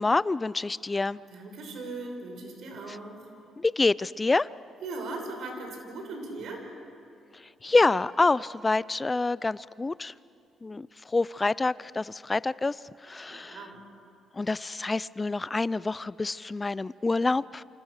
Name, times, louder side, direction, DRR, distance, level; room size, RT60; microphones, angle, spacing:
voice 1, 0.0-1.2 2.9-3.0 3.6-4.5 7.3-10.1 10.6-13.6 14.3-17.6, left 3 dB, 20° left, 19 dB, 0.5 m, -27 dB
voice 2, 1.3-3.3 4.8-6.6 13.3-13.8, right 2 dB, 70° right, 3 dB, 5.8 m, -39 dB
28.5 x 26.0 x 6.6 m, 2.6 s
cardioid pair, 90°, 0 cm